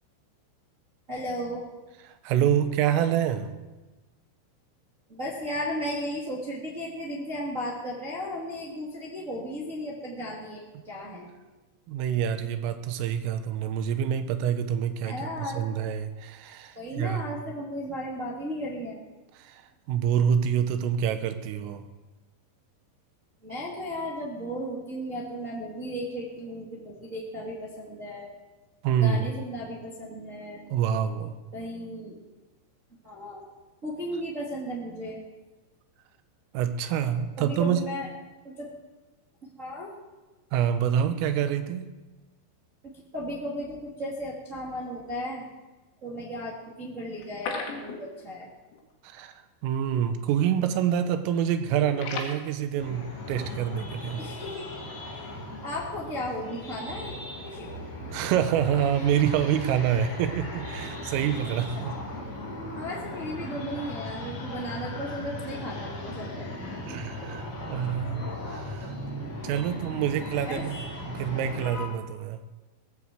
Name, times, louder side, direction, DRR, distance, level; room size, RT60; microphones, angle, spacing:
voice 1, 1.1-1.7 5.1-11.3 15.0-15.7 16.7-19.0 23.4-28.3 29.0-30.7 31.5-32.2 33.0-33.5 33.8-35.2 37.4-38.1 38.4-38.7 39.4-39.9 42.8-45.5 46.0-48.5 54.2-54.8 55.1-57.2 57.4-57.7 61.7-62.0 62.7-66.5 70.4-70.6, equal, 40° right, -5 dB, 1.1 m, -35 dB
voice 2, 2.2-3.5 11.9-17.2 19.4-19.6 19.9-21.9 28.8-29.2 30.7-31.3 36.5-37.8 40.5-41.9 49.0-49.3 49.6-54.2 58.1-61.8 66.9-68.9 69.4-72.4, right 9 dB, 85° right, 9 dB, 3.6 m, -27 dB
sound 1, 47.1-48.4 48.7-48.8 49.2-49.3 49.9-50.1 50.4-50.8 51.1-52.3, left 4 dB, 75° left, 4.4 m, -36 dB
sound 2, 52.8-71.8, left 1 dB, 35° left, 3.4 m, -37 dB
18.5 x 8.1 x 7.5 m, 1.2 s
omnidirectional pair, 5.8 m